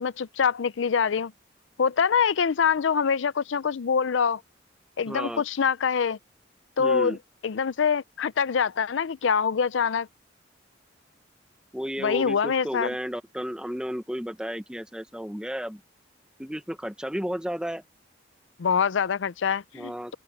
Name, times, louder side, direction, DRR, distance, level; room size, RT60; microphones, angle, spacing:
voice 1, 0.0-1.3 1.8-4.4 5.0-6.2 6.8-7.2 7.4-10.1 12.0-12.9 18.6-20.1, left 6 dB, 90° left, 0.5 m, -24 dB
voice 2, 5.1-5.4 6.8-7.2 11.7-15.8 16.4-17.8 19.7-20.1, equal, 5° right, 1.1 m, -33 dB
open air
head